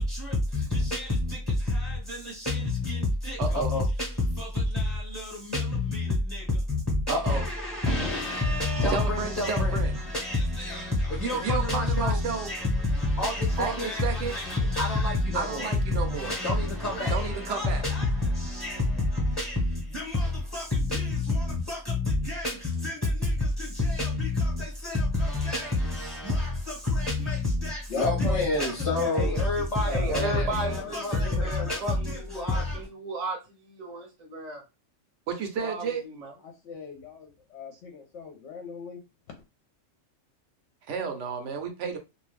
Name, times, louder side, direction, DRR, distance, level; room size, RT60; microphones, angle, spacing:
voice 1, 0.0-32.9, left 2 dB, 15° left, 0.8 m, -28 dB
voice 2, 3.4-3.8 7.1-7.4 8.9-9.9 11.3-12.5 13.6-14.4 15.3-16.3 17.1-17.8 35.3-36.0 40.9-42.0, right 6 dB, 70° right, 1.0 m, -32 dB
voice 3, 27.9-29.4 29.9-31.0 31.3-31.7 36.4-39.0 39.3-39.4, left 6 dB, 65° left, 0.9 m, -36 dB
voice 4, 29.9-34.6 35.6-36.4, right 3 dB, 40° right, 0.7 m, -35 dB
2.6 x 2.2 x 3.2 m
omnidirectional pair, 1.4 m